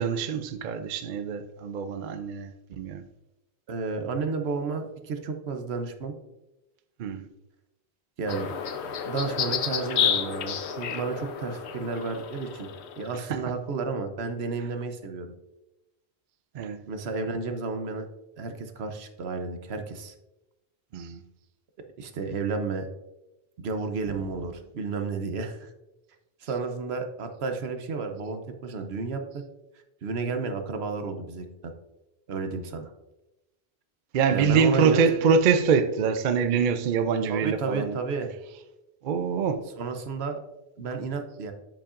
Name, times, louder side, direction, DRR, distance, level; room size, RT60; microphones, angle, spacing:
voice 1, 0.0-3.1 7.0-7.3 13.1-13.4 16.5-16.8 20.9-21.2 34.1-38.0 39.0-39.7, right 6 dB, 60° right, 0.6 m, -25 dB
voice 2, 3.7-6.1 8.2-8.5 9.0-12.7 13.0-15.3 16.9-18.1 18.4-20.1 22.0-22.9 23.6-25.7 26.4-29.4 30.0-31.7 32.3-32.9 34.3-35.0 37.3-38.3 39.8-40.4 40.8-41.5, right 4 dB, 75° right, 1.1 m, -32 dB
sound 1, 8.3-13.2, left 8 dB, 90° left, 0.9 m, -30 dB
7.6 x 7.1 x 2.5 m
omnidirectional pair, 1.1 m